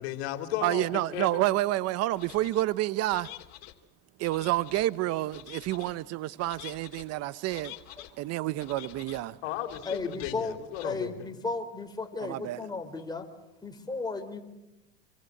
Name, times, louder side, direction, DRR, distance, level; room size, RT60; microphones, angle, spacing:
voice 1, 0.0-1.4 9.4-11.3, left 11 dB, 75° left, 2.9 m, -35 dB
voice 2, 0.6-3.3 4.2-7.7 8.2-9.4 12.2-12.6, right 16 dB, 55° right, 0.9 m, -29 dB
sound 1, 2.2-2.6 3.1-3.7 4.2-4.9 5.3-5.9 6.4-7.0 7.5-8.1 8.6-9.2 9.7-10.3 10.7-10.9, left 16 dB, 60° left, 3.0 m, -47 dB
voice 3, 9.9-10.5 10.8-13.3 13.6-14.4, left 3 dB, 15° left, 4.3 m, -34 dB
27.0 x 24.0 x 7.9 m
supercardioid pair, 105°, 31 cm